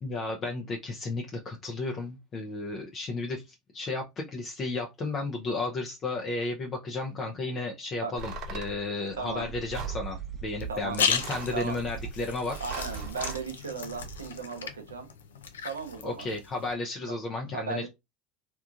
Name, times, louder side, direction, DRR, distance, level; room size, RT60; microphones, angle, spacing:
voice 1, 0.0-12.6 16.0-17.9, left 3 dB, 35° left, 0.6 m, -33 dB
Dog / Bird, 8.1-14.4, right 6 dB, 30° right, 1.2 m, -42 dB
sound 1, 8.2-8.7 9.7-10.0 11.1-11.7 12.5-13.4, right 5 dB, 50° right, 0.6 m, -39 dB
voice 2, 9.2-9.5 10.7-11.0 11.5-11.8 12.6-15.1 15.6-16.3 17.5-17.9, right 5 dB, 90° right, 0.5 m, -36 dB
sound 2, 10.6-16.7, left 7 dB, 85° left, 0.4 m, -35 dB
3.0 x 2.3 x 2.4 m
hypercardioid pair, 80°, 0 cm